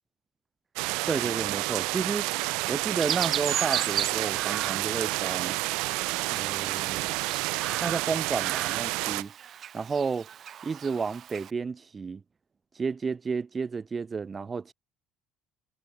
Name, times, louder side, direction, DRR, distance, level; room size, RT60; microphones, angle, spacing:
sound 1, 0.8-9.2, right 27 dB, 90° right, 1.3 m, -30 dB
voice 1, 1.1-2.3 2.7-5.6 6.3-7.2 7.8-9.3 9.7-10.3 10.6-12.2 12.7-14.7, right 5 dB, 25° right, 3.3 m, -31 dB
Chirp tweet, 3.0-11.5, right 9 dB, 45° right, 2.1 m, -36 dB
cardioid pair, 125°, 0 cm